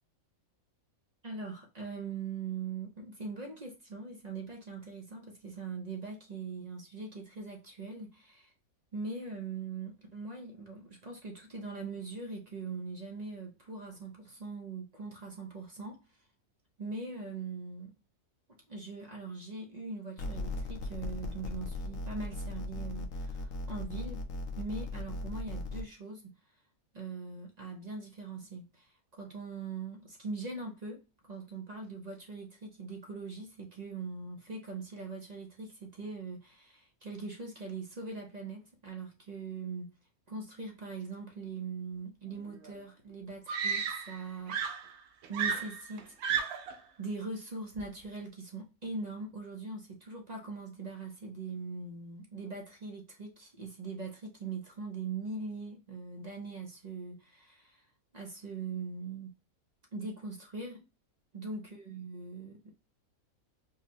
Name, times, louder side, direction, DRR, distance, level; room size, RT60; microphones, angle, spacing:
voice 1, 1.2-8.5 8.9-16.0 16.8-17.9 18.7-24.2 24.6-26.3 26.9-31.0 31.3-39.9 40.3-44.6 45.3-46.7 47.0-57.9 58.1-59.3 59.9-60.8 61.3-62.7, right 4 dB, 50° right, 0.5 m, -41 dB
sound 1, 20.2-25.8, left 2 dB, 70° left, 0.9 m, -38 dB
Screaming, 42.6-42.7 43.5-44.2 44.5-46.8 47.8-48.0, right 6 dB, 85° right, 1.1 m, -33 dB
4.9 x 2.1 x 2.7 m
omnidirectional pair, 1.5 m